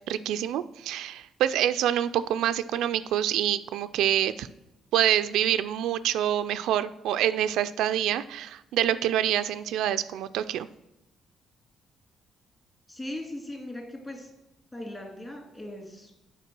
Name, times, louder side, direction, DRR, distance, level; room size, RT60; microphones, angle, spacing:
voice 1, 0.1-4.5 4.9-10.7, right 11 dB, 85° right, 12 dB, 0.3 m, -26 dB
voice 2, 12.9-14.3 14.7-16.3, left 1 dB, 20° left, 1 dB, 2.3 m, -39 dB
7.9 x 4.4 x 6.0 m, 0.90 s
cardioid pair, 90°, 0 cm